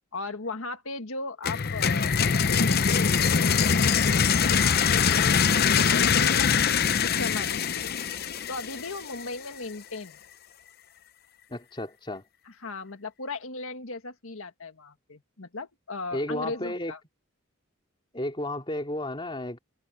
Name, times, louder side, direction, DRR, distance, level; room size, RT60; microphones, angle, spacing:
voice 1, 0.1-7.9 8.5-10.2 12.6-17.0, left 3 dB, 85° left, 1.8 m, -37 dB
sound 1, 1.4-9.2, left 6 dB, 50° left, 0.7 m, -23 dB
voice 2, 11.5-12.2 16.1-16.9 18.1-19.6, left 1 dB, 25° left, 3.4 m, -32 dB
head